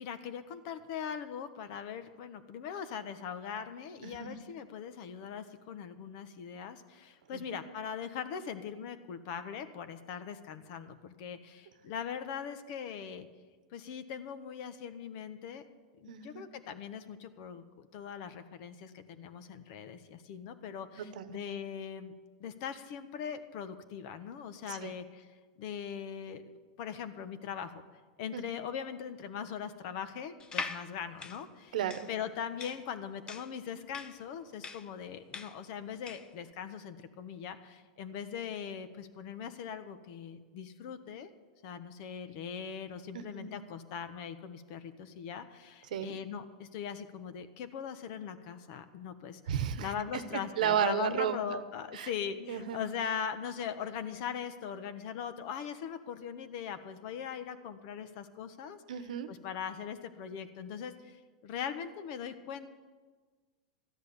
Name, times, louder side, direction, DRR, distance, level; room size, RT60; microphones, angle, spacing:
voice 1, 0.0-13.3 13.7-15.6 16.0-22.1 22.4-25.3 25.6-26.4 26.8-27.8 28.2-31.7 32.1-41.3 41.6-49.4 49.8-58.8 59.3-62.7, left 7 dB, 55° left, 11 dB, 1.2 m, -40 dB
voice 2, 16.1-16.4 21.0-21.4 24.7-24.9 28.3-28.4 31.7-32.1 43.1-43.5 45.9-46.2 49.5-49.9 50.3-51.6 51.9-52.1 52.5-52.8 58.9-59.3, right 9 dB, 80° right, 11 dB, 1.0 m, -33 dB
sound 1, 30.4-36.4, left 4 dB, 20° left, 0.8 m, -43 dB
13.5 x 10.5 x 7.1 m, 1.4 s
supercardioid pair, 130°, 4 cm